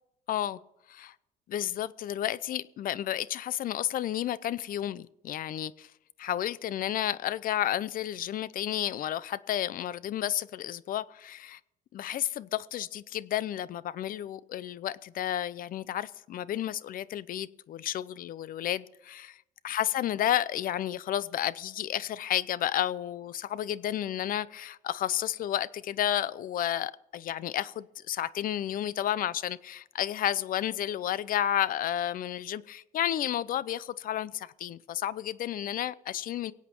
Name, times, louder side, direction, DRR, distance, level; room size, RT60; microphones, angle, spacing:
voice 1, 0.3-0.6 0.9-1.1 1.5-5.9 6.2-11.6 11.9-19.3 19.6-36.5, left 11 dB, 55° left, 0.6 m, -31 dB
23.5 x 8.4 x 4.5 m
cardioid pair, 110°, 17 cm